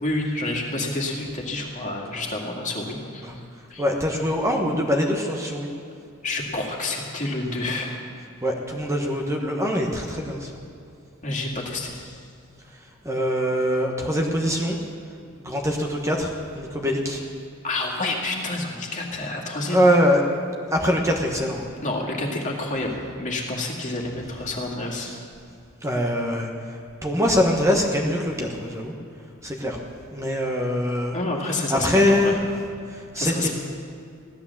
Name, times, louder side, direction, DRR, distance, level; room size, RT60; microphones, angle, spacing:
voice 1, 0.0-3.4 3.7-3.8 6.2-8.0 11.2-12.3 17.6-19.8 21.8-25.1 31.1-32.4 33.2-33.5, left 2 dB, 35° left, -1 dB, 2.3 m, -29 dB
voice 2, 3.8-5.7 8.4-10.5 13.0-14.8 15.4-17.2 19.7-20.2 20.7-21.7 25.8-26.8 27.0-28.9 29.4-29.8 30.1-31.1 31.7-32.4 32.9-33.5, equal, 15° right, 0 dB, 1.2 m, -23 dB
16.0 x 12.0 x 7.2 m, 2.5 s
head